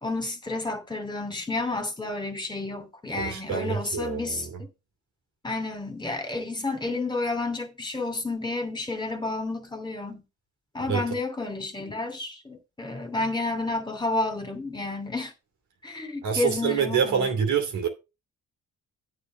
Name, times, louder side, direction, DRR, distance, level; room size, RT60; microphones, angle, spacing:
voice 1, 0.0-4.5 5.4-10.2 10.7-15.3 15.8-17.3, left 2 dB, 15° left, 2.8 m, -31 dB
voice 2, 3.1-4.6 10.8-11.2 16.2-17.9, right 7 dB, 70° right, 2.8 m, -27 dB
8.8 x 4.6 x 6.2 m
cardioid pair, 90°, 30 cm